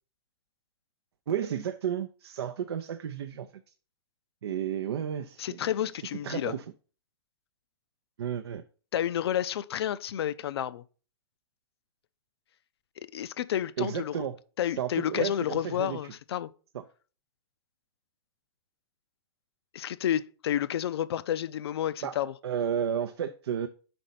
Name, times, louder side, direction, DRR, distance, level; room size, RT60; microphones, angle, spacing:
voice 1, 1.3-3.6 4.4-5.7 6.0-6.6 8.2-8.6 13.8-14.3 14.6-16.0 16.7-16.8 22.0-22.2 22.4-23.7, right 9 dB, 90° right, 0.5 m, -32 dB
voice 2, 5.4-6.5 8.9-10.8 13.0-14.3 14.6-16.5 19.7-22.3, left 10 dB, 85° left, 0.4 m, -30 dB
5.2 x 4.1 x 5.7 m
hypercardioid pair, 135°, 13 cm